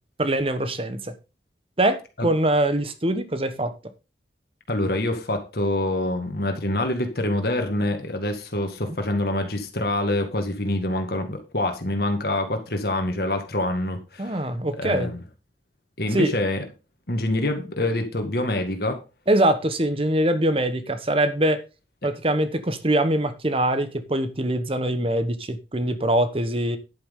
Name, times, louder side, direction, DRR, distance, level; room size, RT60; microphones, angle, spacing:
voice 1, 0.2-1.1 1.8-3.7 8.8-9.0 14.2-15.1 16.1-16.3 19.3-21.6 22.0-26.8, right 1 dB, 30° right, 1.2 m, -23 dB
voice 2, 4.7-14.4 14.8-15.2 16.0-16.6 17.1-19.0, left 1 dB, 55° left, 1.9 m, -26 dB
10.5 x 8.9 x 3.8 m
head